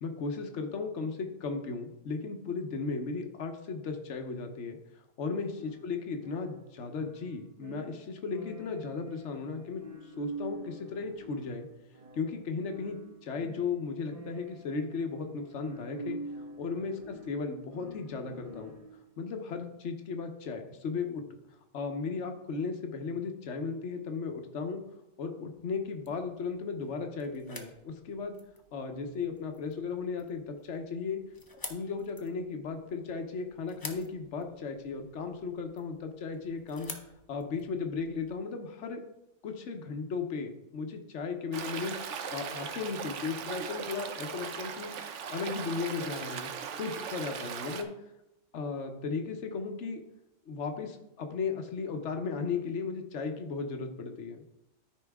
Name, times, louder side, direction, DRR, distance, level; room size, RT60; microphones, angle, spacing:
voice 1, 0.0-4.8 5.2-11.7 12.1-16.2 16.6-18.7 19.2-21.2 21.7-24.8 25.2-28.4 28.7-31.2 31.7-36.9 37.3-39.0 39.4-41.9 42.3-44.9 45.3-46.5 46.8-47.9 48.5-50.0 50.5-54.4, left 4 dB, 80° left, 5 dB, 1.2 m, -36 dB
sound 1, 5.5-19.1, right 1 dB, 30° right, 1.2 m, -46 dB
sound 2, 25.5-38.4, left 2 dB, 20° left, 0.8 m, -50 dB
Stream, 41.5-47.8, right 7 dB, 90° right, 1.1 m, -39 dB
13.0 x 4.9 x 3.5 m, 0.88 s
omnidirectional pair, 1.2 m